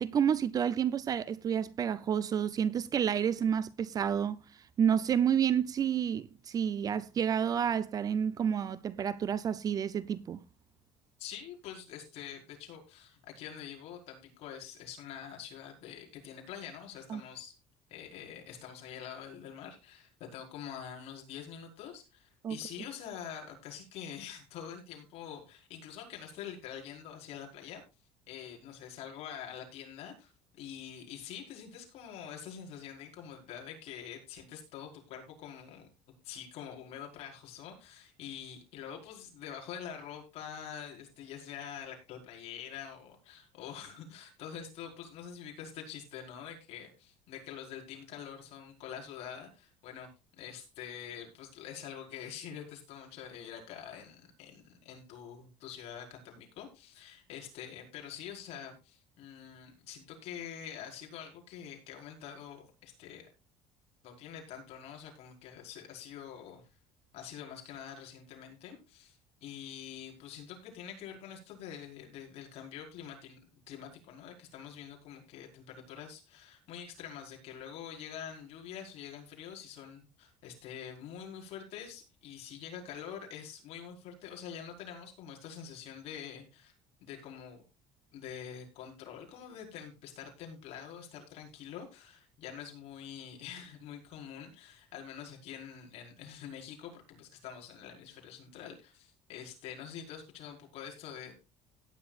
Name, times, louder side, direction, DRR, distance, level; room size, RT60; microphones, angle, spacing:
voice 1, 0.0-4.4 4.8-10.4 17.1-17.2 22.4-22.6, right 8 dB, 30° right, 0.6 m, -29 dB
voice 2, 11.2-17.5 17.9-27.8 28.3-35.9 36.2-50.1 50.4-63.3 64.0-66.6 67.1-73.4 73.7-86.7 87.0-87.6 88.1-101.3, left 8 dB, 60° left, 5.1 m, -46 dB
17.5 x 10.0 x 2.5 m
cardioid pair, 150°, 12 cm